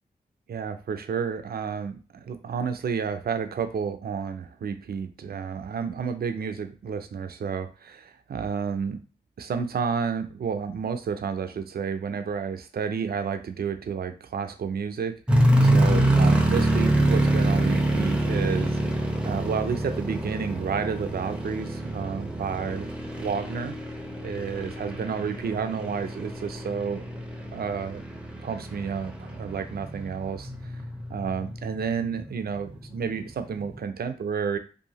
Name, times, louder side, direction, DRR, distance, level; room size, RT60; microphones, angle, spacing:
voice 1, 0.5-9.0 9.4-15.1 15.6-18.8 19.2-22.9 23.2-23.7 24.2-27.0 27.5-28.0 28.4-30.5 31.1-34.6, right 6 dB, 65° right, 8 dB, 0.5 m, -30 dB
sound 1, 15.3-32.3 32.9-33.0 33.5-33.8, right 1 dB, 5° right, 0.7 m, -26 dB
2.7 x 2.3 x 2.9 m, 0.36 s
cardioid pair, 40°, 17 cm